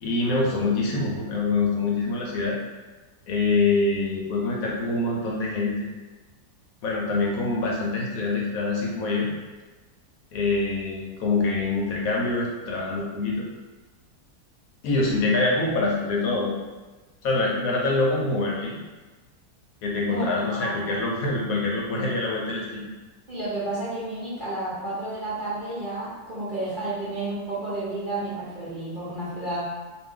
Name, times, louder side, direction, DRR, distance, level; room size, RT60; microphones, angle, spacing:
voice 1, 0.0-2.6 3.3-5.9 6.8-9.3 10.3-13.5 14.8-16.5 17.2-18.8 19.8-22.8, left 3 dB, 70° left, -3 dB, 0.9 m, -25 dB
voice 2, 20.1-20.9 23.3-29.6, right 2 dB, 45° right, -9 dB, 0.7 m, -31 dB
2.5 x 2.4 x 3.6 m, 1.2 s
omnidirectional pair, 1.7 m